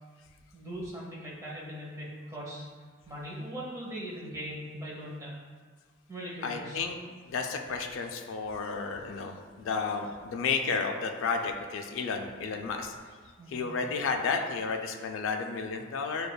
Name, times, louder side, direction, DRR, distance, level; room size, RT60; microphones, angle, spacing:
voice 1, 0.5-2.6 3.1-5.3 6.1-6.8 13.4-13.7, equal, 15° right, -6 dB, 0.8 m, -40 dB
voice 2, 6.4-7.0 7.3-12.9 13.5-16.3, left 4 dB, 80° left, 4 dB, 0.3 m, -32 dB
6.4 x 2.3 x 2.2 m, 1.5 s
head